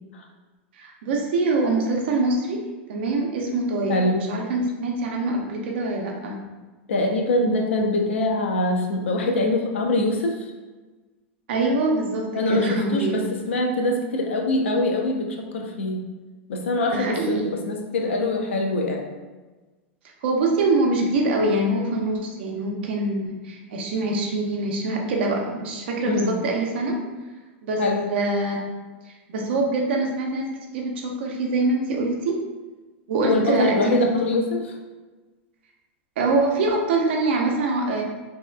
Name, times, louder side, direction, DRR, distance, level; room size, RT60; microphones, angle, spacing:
voice 1, 0.8-2.6 2.9-6.4 11.5-13.2 16.9-17.5 20.2-27.0 27.6-28.6 29.3-32.4 33.1-34.0 36.2-38.0, right 2 dB, 65° right, 0 dB, 0.6 m, -24 dB
voice 2, 3.9-4.3 6.9-10.5 12.3-16.0 16.5-19.1 26.0-26.3 27.8-28.1 33.2-34.7, left 2 dB, 80° left, 2 dB, 0.5 m, -23 dB
2.7 x 2.4 x 2.2 m, 1.2 s
hypercardioid pair, 110°, 6 cm